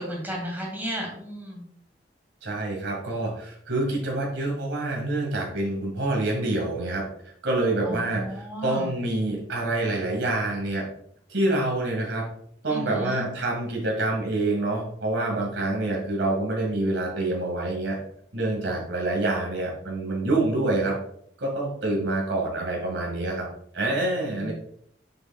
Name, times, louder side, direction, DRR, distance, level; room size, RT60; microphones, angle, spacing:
voice 1, 0.0-1.6 7.9-8.9 12.7-13.2 24.4-24.5, equal, 10° right, -1 dB, 2.2 m, -33 dB
voice 2, 2.4-7.0 7.4-10.8 11.3-12.3 12.6-18.0 18.3-21.0 21.4-23.5 23.7-24.5, right 2 dB, 85° right, -2 dB, 2.0 m, -26 dB
7.0 x 6.9 x 2.4 m, 0.68 s
head